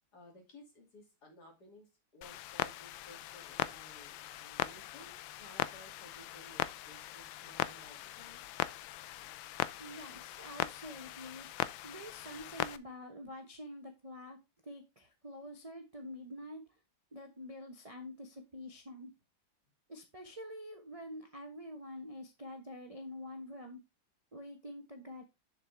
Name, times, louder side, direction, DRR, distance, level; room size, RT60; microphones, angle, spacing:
voice 1, 0.1-8.4, left 1 dB, 50° left, 1 dB, 3.1 m, -57 dB
Clock, 2.2-12.8, left 14 dB, 75° left, 1.3 m, -40 dB
voice 2, 9.8-11.5 11.8-14.4 14.6-16.6 17.1-19.1 19.9-23.8 24.3-25.2, left 1 dB, 25° right, 4 dB, 0.8 m, -47 dB
7.1 x 6.6 x 3.4 m, 0.24 s
omnidirectional pair, 2.2 m